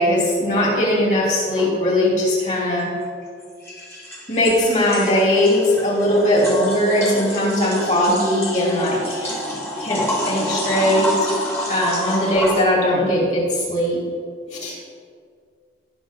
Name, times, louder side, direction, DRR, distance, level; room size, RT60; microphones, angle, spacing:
voice 1, 0.0-2.9 4.3-9.3 9.8-11.3 11.7-14.0 14.5-14.8, left 1 dB, 40° left, -4 dB, 3.2 m, -19 dB
sound 1, 1.6-1.7 3.4-12.6, equal, 15° left, 1.7 m, -27 dB
18.5 x 6.5 x 3.8 m, 2.1 s
head